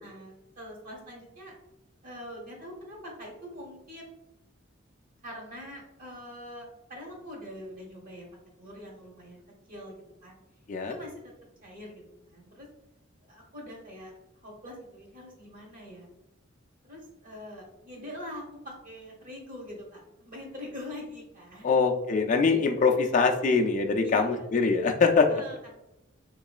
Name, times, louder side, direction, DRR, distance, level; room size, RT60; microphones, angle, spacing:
voice 1, 0.0-1.5 2.0-4.2 5.2-8.3 8.6-9.4 9.7-10.4 10.9-11.1 11.6-12.7 13.2-16.1 16.9-21.8 23.4-23.6 24.0-24.5 25.3-25.8, left 1 dB, 45° right, -1 dB, 1.1 m, -44 dB
voice 2, 21.6-25.4, left 4 dB, 40° left, 3 dB, 0.3 m, -23 dB
3.8 x 3.0 x 2.3 m, 0.89 s
head